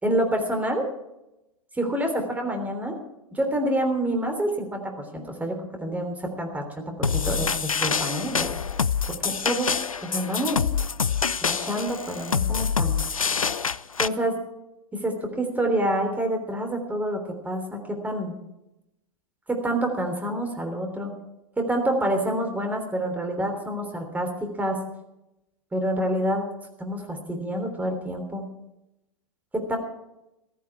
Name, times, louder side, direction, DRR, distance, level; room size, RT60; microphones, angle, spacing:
voice 1, 0.0-0.8 1.8-3.0 3.3-8.5 9.2-9.7 10.0-10.6 11.4-13.0 14.0-14.4 14.9-18.4 19.5-21.1 21.6-24.8 25.7-26.4 26.8-28.5 29.5-29.8, right 1 dB, 10° right, 4 dB, 3.4 m, -27 dB
sound 1, 7.0-14.1, left 6 dB, 80° left, 0.5 m, -26 dB
15.0 x 14.0 x 4.6 m, 0.90 s
figure-of-eight pair, 100°, 17 cm